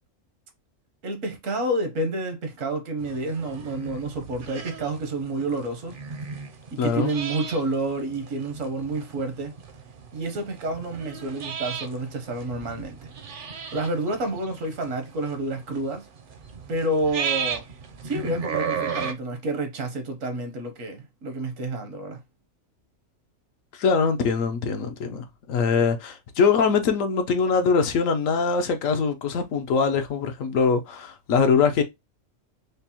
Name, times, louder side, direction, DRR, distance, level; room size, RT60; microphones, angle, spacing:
voice 1, 1.0-6.0 6.7-9.5 10.1-12.9 13.2-16.1 16.7-17.6 18.0-22.2, right 2 dB, 75° right, 1.2 m, -29 dB
sound 1, 3.0-19.1, right 6 dB, 55° right, 0.6 m, -35 dB
voice 2, 6.8-7.1 23.7-31.8, left 5 dB, 80° left, 1.1 m, -23 dB
5.1 x 2.0 x 2.8 m
omnidirectional pair, 1.4 m